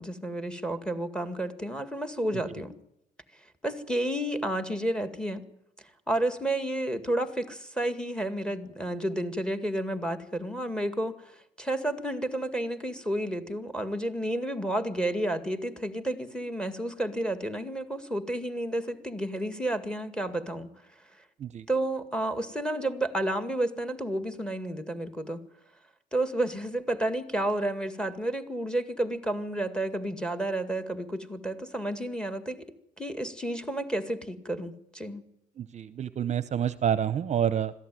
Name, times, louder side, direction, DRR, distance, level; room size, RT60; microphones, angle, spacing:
voice 1, 0.0-2.7 3.6-5.4 6.1-11.1 11.6-20.7 21.7-25.4 26.1-32.7 33.0-35.2, right 1 dB, 5° left, 10 dB, 2.0 m, -31 dB
voice 2, 35.6-37.7, right 9 dB, 40° right, 15 dB, 0.8 m, -28 dB
21.5 x 14.5 x 9.2 m, 0.78 s
cardioid pair, 110°, 17 cm